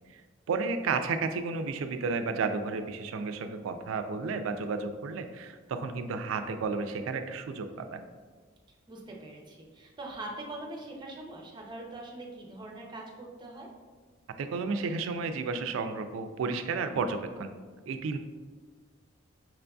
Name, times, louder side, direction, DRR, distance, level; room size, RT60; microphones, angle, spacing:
voice 1, 0.5-8.1 14.4-17.5 17.9-18.2, right 4 dB, 90° right, 8 dB, 0.3 m, -32 dB
voice 2, 8.9-13.7, right 2 dB, 25° right, -1 dB, 0.5 m, -42 dB
5.9 x 2.5 x 2.3 m, 1.5 s
head